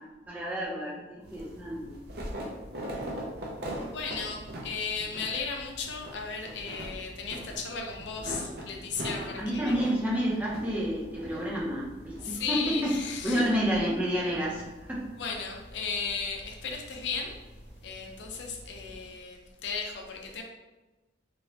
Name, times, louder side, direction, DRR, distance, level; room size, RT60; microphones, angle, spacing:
voice 1, 0.3-2.0 9.4-13.0 13.2-15.1, equal, 10° right, -5 dB, 0.5 m, -30 dB
sound 1, 1.2-19.1, equal, 60° right, 0.5 m, -42 dB
voice 2, 3.9-9.9 12.2-13.6 15.2-17.3 17.8-20.4, left 5 dB, 80° left, 2 dB, 0.4 m, -35 dB
2.9 x 2.1 x 2.7 m, 1.1 s
head